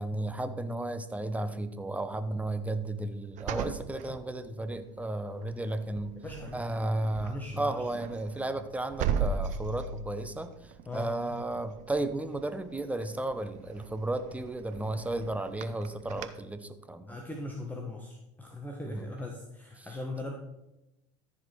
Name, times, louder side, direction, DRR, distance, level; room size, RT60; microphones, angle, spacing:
voice 1, 0.0-6.2 6.5-17.2 18.9-19.1 19.8-19.9, right 2 dB, 10° right, 9 dB, 1.0 m, -34 dB
sound 1, 3.4-4.9 5.4-5.7 6.0-16.3, right 6 dB, 55° right, 0.8 m, -38 dB
voice 2, 6.2-6.6 7.2-7.7 10.9-11.1 17.1-20.3, left 2 dB, 10° left, 0 dB, 1.4 m, -39 dB
13.5 x 5.0 x 4.6 m, 0.93 s
hypercardioid pair, 75°, 16 cm